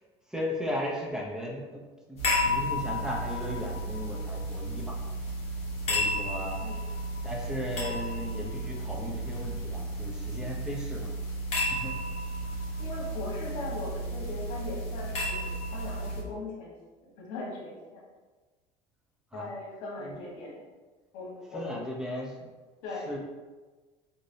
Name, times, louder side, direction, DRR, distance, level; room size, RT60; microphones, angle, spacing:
voice 1, 0.3-5.0 5.9-6.6 7.2-11.1 11.7-11.9 19.3-19.5 20.0-20.2 21.5-22.5 23.1-23.2, equal, 5° right, -3 dB, 0.5 m, -36 dB
sound 1, 2.2-16.2, equal, 45° left, 1.0 m, -33 dB
voice 2, 12.8-16.7 17.2-18.0 19.3-20.6 21.1-21.8 22.8-23.1, left 2 dB, 75° left, -3 dB, 1.1 m, -39 dB
3.2 x 2.6 x 2.6 m, 1.3 s
cardioid pair, 125°, 14 cm